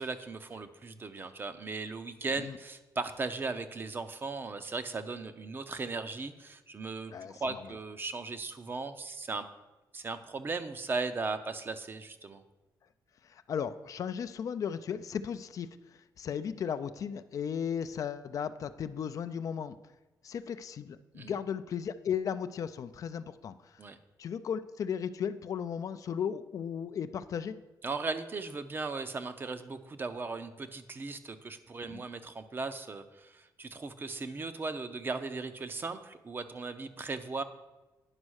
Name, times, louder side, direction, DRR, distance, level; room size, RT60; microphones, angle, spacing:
voice 1, 0.0-9.5 9.9-12.4 21.1-21.3 23.8-24.0 27.8-37.4, right 3 dB, 30° right, 10 dB, 0.6 m, -37 dB
voice 2, 7.1-7.6 13.2-15.7 16.2-19.8 20.2-23.8 24.2-27.6 31.9-32.0, left 8 dB, 55° left, 12 dB, 0.4 m, -35 dB
9.8 x 5.3 x 6.3 m, 1.1 s
cardioid pair, 135°, 7 cm